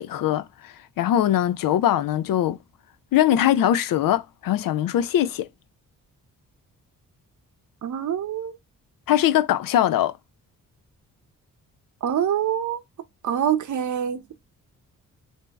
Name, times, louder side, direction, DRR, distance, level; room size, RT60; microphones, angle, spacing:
voice 1, 0.0-2.6 3.1-5.5 9.1-10.1, left 11 dB, 75° left, 0.5 m, -21 dB
voice 2, 7.8-8.6 12.0-12.8 13.2-14.2, right 9 dB, 60° right, 0.7 m, -25 dB
3.4 x 2.7 x 3.9 m
cardioid pair, 75°, 34 cm